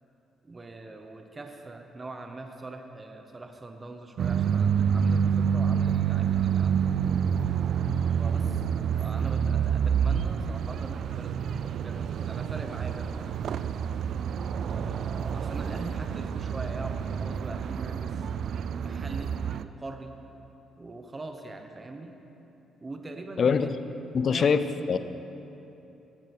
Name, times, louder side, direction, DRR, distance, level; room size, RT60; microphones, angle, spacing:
voice 1, 0.4-7.0 8.2-8.6 9.0-13.6 14.6-18.3 18.8-20.2 20.8-22.2 22.8-23.7 24.2-24.5, right 2 dB, 25° right, 5 dB, 0.9 m, -42 dB
sound 1, 4.2-19.6, right 7 dB, 65° right, 0.3 m, -28 dB
voice 2, 23.4-23.8 24.1-25.0, left 6 dB, 50° left, 12 dB, 0.5 m, -24 dB
15.5 x 7.6 x 4.7 m, 3.0 s
cardioid pair, 90°, 0 cm